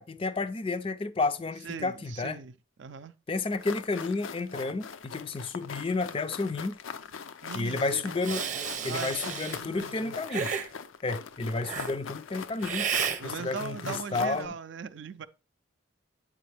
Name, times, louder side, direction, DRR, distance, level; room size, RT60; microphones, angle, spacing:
voice 1, 0.0-2.4 3.3-6.8 7.5-8.4 8.8-10.5 11.0-12.9 13.2-14.5, left 3 dB, 25° left, 0.4 m, -31 dB
voice 2, 1.6-2.5 2.8-3.1 7.4-10.2 13.2-15.3, right 5 dB, 70° right, 0.4 m, -40 dB
sound 1, 3.5-14.5, left 6 dB, 85° left, 0.5 m, -41 dB
Hiss, 8.2-9.6 10.3-10.7 11.6-11.9 12.6-13.2, right 7 dB, 40° right, 0.8 m, -32 dB
8.6 x 4.9 x 3.3 m
head